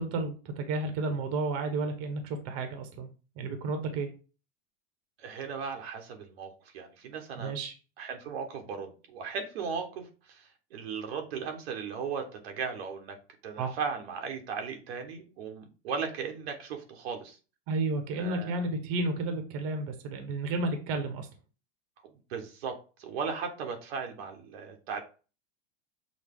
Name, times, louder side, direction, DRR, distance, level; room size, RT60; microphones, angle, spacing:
voice 1, 0.0-3.1 3.4-4.1 7.3-7.7 13.6-13.8 17.7-21.3, right 2 dB, 50° right, 7 dB, 1.1 m, -32 dB
voice 2, 5.2-7.6 8.0-10.4 10.7-13.2 13.4-17.4 18.1-18.6 22.3-25.0, right 6 dB, 75° right, 4 dB, 1.2 m, -37 dB
6.4 x 2.3 x 3.6 m, 0.35 s
supercardioid pair, 125°, 31 cm